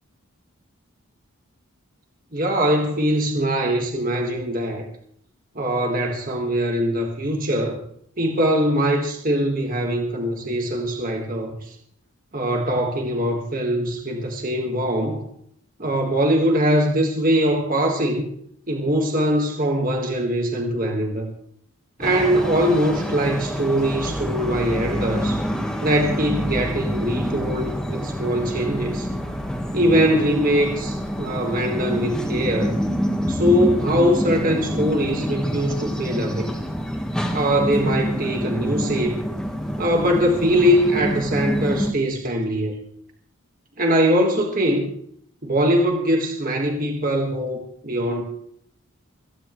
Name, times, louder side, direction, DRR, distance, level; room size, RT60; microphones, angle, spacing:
voice 1, 2.3-4.9 5.5-7.8 8.2-11.7 12.3-15.2 15.8-18.3 18.7-21.3 22.0-25.4 25.8-29.1 29.7-32.8 33.3-36.5 37.3-39.2 39.8-42.7 43.8-44.9 45.4-48.2, equal, 40° right, 1 dB, 1.6 m, -22 dB
sound 1, 22.0-41.9, equal, 5° left, 1.4 m, -27 dB
25.5 x 10.0 x 3.1 m, 0.67 s
head